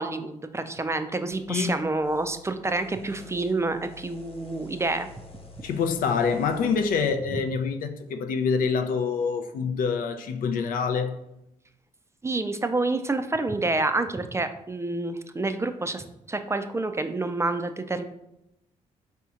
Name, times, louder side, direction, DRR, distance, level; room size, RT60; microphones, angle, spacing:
voice 1, 0.0-5.1 12.2-18.0, right 2 dB, 20° right, 0.3 m, -28 dB
sound 1, 1.3-7.1, left 4 dB, 40° left, 1.0 m, -49 dB
voice 2, 5.6-11.1, left 5 dB, 70° left, 0.4 m, -26 dB
4.2 x 2.8 x 2.4 m
supercardioid pair, 50°, 15 cm